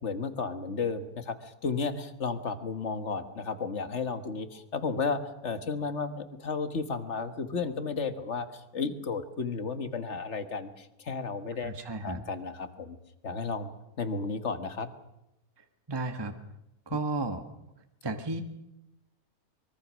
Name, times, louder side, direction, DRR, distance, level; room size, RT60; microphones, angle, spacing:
voice 1, 0.0-13.0 13.2-13.7 14.0-14.9, left 4 dB, 50° left, 10 dB, 1.8 m, -33 dB
voice 2, 11.6-12.2 15.9-16.3 16.9-17.4 18.0-18.4, right 2 dB, 15° right, 7 dB, 1.3 m, -33 dB
24.0 x 22.5 x 6.4 m, 0.89 s
omnidirectional pair, 1.6 m